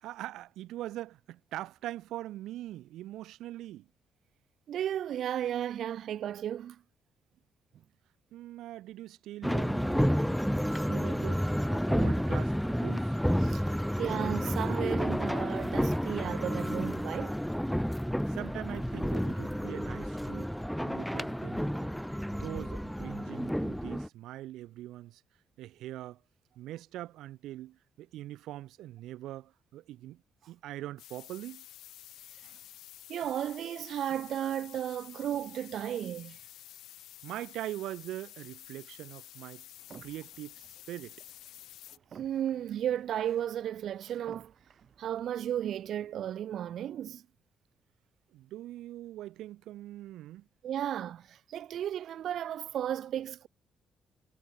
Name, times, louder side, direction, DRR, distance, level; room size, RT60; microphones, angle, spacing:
voice 1, 0.0-3.9 8.3-13.2 18.3-20.5 20.8-22.0 22.3-25.2 25.6-26.2 26.6-30.2 30.5-31.6 37.2-39.7 40.0-41.2 48.3-50.5, right 14 dB, 85° right, 2.0 m, -42 dB
voice 2, 4.7-6.8 13.4-13.6 14.0-17.4 33.1-36.4 42.2-44.5 45.0-47.2 50.6-53.5, right 10 dB, 70° right, 0.4 m, -34 dB
sound 1, 9.4-24.1, equal, ahead, 0.7 m, -30 dB
sound 2, 31.0-42.0, left 14 dB, 85° left, 0.8 m, -51 dB
sound 3, 39.8-46.3, right 7 dB, 55° right, 2.0 m, -56 dB
cardioid pair, 90°, 0 cm